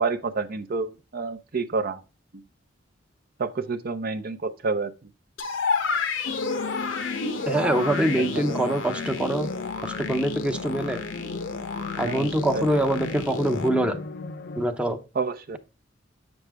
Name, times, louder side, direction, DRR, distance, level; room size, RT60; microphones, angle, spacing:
voice 1, 0.0-2.0 3.4-4.9 8.2-8.6 12.0-12.3 12.5-12.7 15.1-15.6, right 4 dB, 50° right, 0.6 m, -29 dB
sound 1, 5.4-13.7, left 4 dB, 75° left, 0.9 m, -31 dB
sound 2, 6.2-14.6, left 4 dB, 55° left, 0.5 m, -35 dB
voice 2, 7.4-9.5 9.8-11.0 12.0-14.0 14.6-15.0, right 1 dB, 5° right, 0.6 m, -24 dB
8.0 x 6.2 x 3.4 m
head